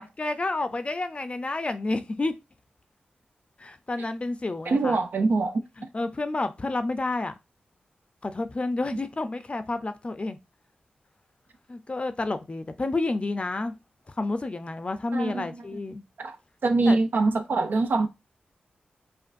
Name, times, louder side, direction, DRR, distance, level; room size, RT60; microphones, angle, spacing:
voice 1, 0.0-2.3 3.6-5.0 5.8-7.3 8.2-10.4 11.7-13.7 14.2-16.0 16.9-17.0, left 2 dB, 35° left, 0.5 m, -30 dB
voice 2, 4.7-5.6 15.1-15.6 16.2-16.4 16.6-18.1, right 3 dB, 70° right, 0.6 m, -24 dB
5.2 x 2.4 x 2.5 m
cardioid pair, 60°, 3 cm